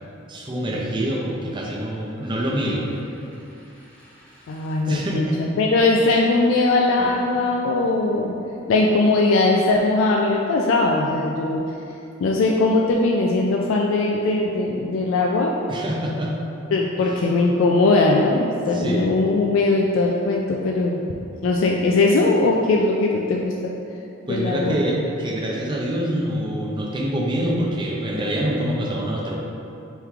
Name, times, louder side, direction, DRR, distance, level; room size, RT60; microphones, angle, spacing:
voice 1, 0.3-2.9 4.9-5.4 15.7-16.3 18.7-19.1 24.3-29.4, right 1 dB, 25° right, -3 dB, 0.5 m, -25 dB
sound 1, 1.8-5.5 7.0-8.9, right 1 dB, 10° left, 0.7 m, -43 dB
voice 2, 4.5-8.4 8.7-11.6 12.2-15.5 16.7-21.0 21.4-23.7 24.3-24.8, left 2 dB, 75° left, -1 dB, 0.3 m, -20 dB
3.4 x 3.1 x 3.5 m, 2.7 s
head